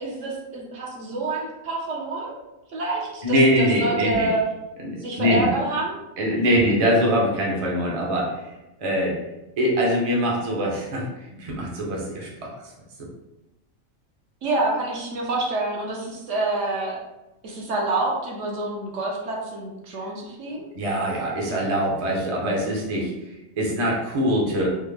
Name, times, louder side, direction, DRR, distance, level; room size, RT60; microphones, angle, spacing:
voice 1, 0.0-2.4 2.7-4.4 5.0-5.9 6.4-6.5 14.4-17.0 17.4-20.6, right 2 dB, 65° right, -2 dB, 1.0 m, -27 dB
voice 2, 3.2-4.3 4.8-5.5 6.2-8.3 8.8-9.2 9.6-11.0 11.4-12.3 20.7-23.1 23.6-24.7, equal, 35° right, -3 dB, 0.6 m, -22 dB
3.4 x 2.0 x 3.3 m, 0.98 s
omnidirectional pair, 1.4 m